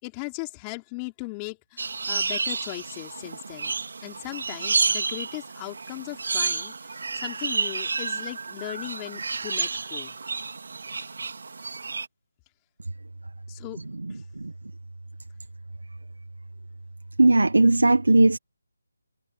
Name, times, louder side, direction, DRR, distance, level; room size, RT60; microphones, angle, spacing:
voice 1, 0.0-10.1 13.5-14.2, left 29 dB, 15° left, 4.5 m, -38 dB
sound 1, 1.8-12.1, right 4 dB, 65° right, 3.2 m, -30 dB
voice 2, 17.2-18.4, right 2 dB, 90° right, 1.4 m, -17 dB
figure-of-eight pair, 165°, 0 cm